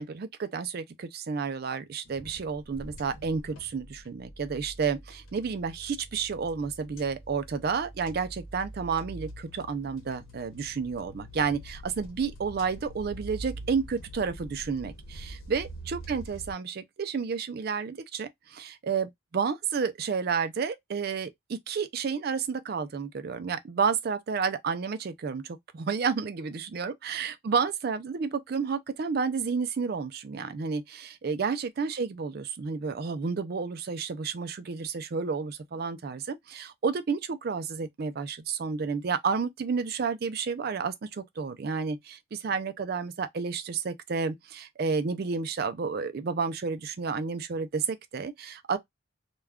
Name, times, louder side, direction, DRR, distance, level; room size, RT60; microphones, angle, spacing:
voice 1, 0.0-48.8, right 5 dB, 45° right, 0.4 m, -31 dB
sound 1, 2.0-16.5, right 1 dB, 85° left, 0.9 m, -45 dB
2.3 x 2.3 x 3.3 m
head